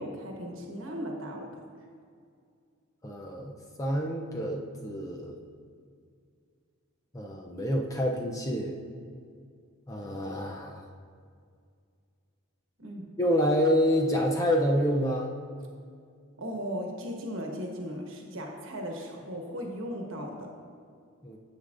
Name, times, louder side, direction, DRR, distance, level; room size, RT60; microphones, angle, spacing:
voice 1, 0.0-1.6 12.8-13.1 16.4-20.5, equal, 60° right, 1 dB, 1.2 m, -37 dB
voice 2, 3.0-5.4 7.1-8.8 9.9-10.8 13.2-15.3 21.2-21.4, equal, 15° left, 0 dB, 0.4 m, -28 dB
9.7 x 8.1 x 2.5 m, 2.2 s
head